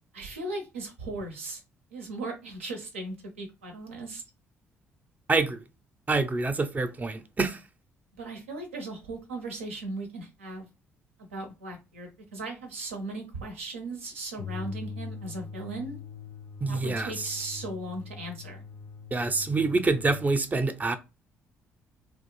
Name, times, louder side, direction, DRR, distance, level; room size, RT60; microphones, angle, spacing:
voice 1, 0.1-1.6 1.9-4.2 8.2-10.7 11.2-16.0 16.7-18.6, right 2 dB, 85° right, 0.5 m, -37 dB
voice 2, 5.3-5.6 6.1-7.6 16.6-17.1 19.1-21.0, right 3 dB, 25° right, 0.4 m, -26 dB
sound 1, 14.4-20.3, left 5 dB, 50° left, 0.3 m, -42 dB
2.5 x 2.0 x 3.0 m
figure-of-eight pair, 45°, 7 cm